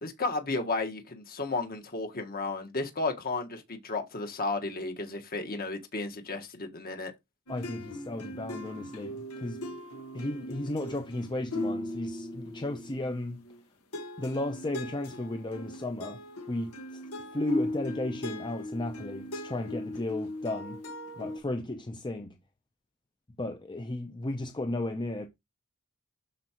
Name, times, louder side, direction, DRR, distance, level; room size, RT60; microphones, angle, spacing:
voice 1, 0.0-7.1, left 3 dB, 45° left, 1.5 m, -33 dB
sound 1, 7.5-13.6 13.9-21.4, left 1 dB, 90° left, 1.6 m, -38 dB
voice 2, 7.5-9.6 10.1-13.4 14.2-16.2 16.5-17.0 17.3-20.8 21.2-22.4 23.4-25.3, left 1 dB, 20° left, 0.6 m, -34 dB
12.5 x 4.7 x 3.0 m
head